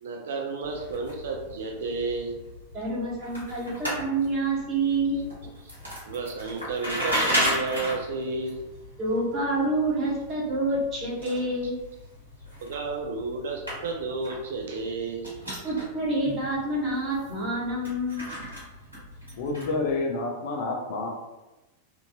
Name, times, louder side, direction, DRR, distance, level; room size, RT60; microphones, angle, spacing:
voice 1, 0.0-2.4 6.1-8.6 12.6-15.3, right 3 dB, 60° right, 2 dB, 0.3 m, -32 dB
sound 1, 0.6-19.9, equal, 85° right, 1.0 m, -36 dB
voice 2, 2.7-5.2 9.0-11.8 15.6-18.3, right 2 dB, 25° right, -6 dB, 1.1 m, -27 dB
voice 3, 19.4-21.1, left 3 dB, 50° left, 0 dB, 0.5 m, -28 dB
2.8 x 2.5 x 2.2 m, 1.0 s
figure-of-eight pair, 90°, 0 cm